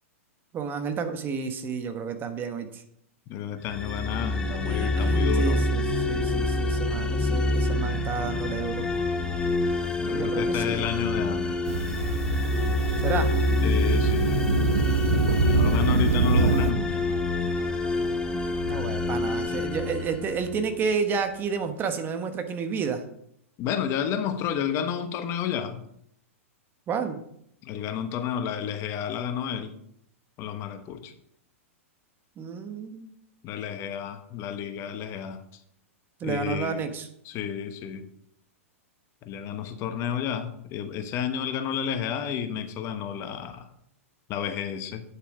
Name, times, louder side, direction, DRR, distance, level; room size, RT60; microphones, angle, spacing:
voice 1, 0.5-2.8 4.7-8.9 10.1-10.8 13.0-13.3 18.7-23.0 26.9-27.2 32.4-33.1 36.2-37.1, right 6 dB, 25° right, 8 dB, 1.2 m, -31 dB
voice 2, 3.3-5.6 10.0-11.6 13.6-14.4 15.5-17.0 23.6-25.8 27.6-29.7 30.4-31.1 33.4-35.4 36.2-36.9 37.2-38.0 39.2-43.7 44.3-45.0, left 8 dB, 40° left, 8 dB, 1.1 m, -31 dB
sound 1, 3.7-20.8, left 2 dB, 10° left, 1.1 m, -27 dB
sound 2, 11.7-16.7, right 3 dB, 80° right, 1.0 m, -25 dB
8.8 x 7.2 x 4.9 m, 0.71 s
hypercardioid pair, 120°, 8 cm